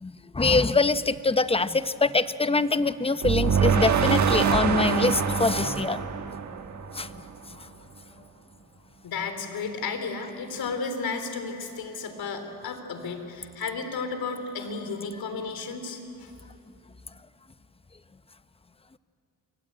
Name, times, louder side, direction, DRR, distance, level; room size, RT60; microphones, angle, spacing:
voice 1, 0.0-6.0 6.9-7.1, left 3 dB, 15° left, 12 dB, 0.8 m, -24 dB
sound 1, 3.2-7.3, right 6 dB, 50° right, 1.5 m, -24 dB
voice 2, 9.0-16.3, left 4 dB, 70° left, 7 dB, 3.6 m, -33 dB
28.0 x 23.0 x 8.8 m, 2.7 s
cardioid pair, 95°, 38 cm